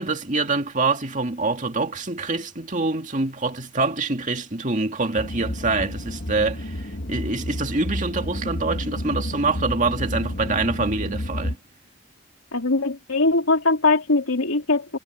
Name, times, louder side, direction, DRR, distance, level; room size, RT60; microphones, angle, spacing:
voice 1, 0.0-11.6, right 3 dB, 35° right, 2.2 m, -25 dB
sound 1, 5.2-11.6, left 1 dB, 55° left, 1.6 m, -30 dB
voice 2, 12.5-15.0, left 3 dB, 85° left, 3.2 m, -21 dB
head